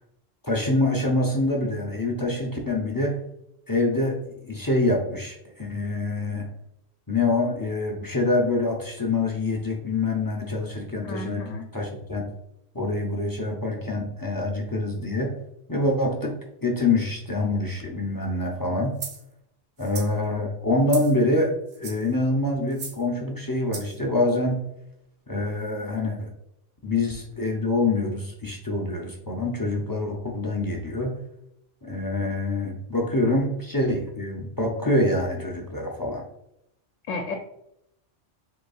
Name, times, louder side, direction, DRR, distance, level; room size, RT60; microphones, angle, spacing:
voice 1, 0.4-3.2 3.7-6.5 7.1-11.4 11.7-12.2 12.7-15.4 15.7-19.0 19.8-21.5 21.8-24.6 25.3-26.3 26.8-31.2 31.8-36.2, left 2 dB, 35° left, 0 dB, 0.3 m, -25 dB
voice 2, 11.0-11.7 37.1-37.3, left 3 dB, 85° left, 4 dB, 0.9 m, -32 dB
sound 1, 19.0-19.2 19.8-20.1 20.9-21.2 21.7-22.1 22.7-23.0 23.7-24.0, right 5 dB, 65° right, 1.1 m, -37 dB
5.1 x 3.9 x 2.3 m, 0.79 s
omnidirectional pair, 1.3 m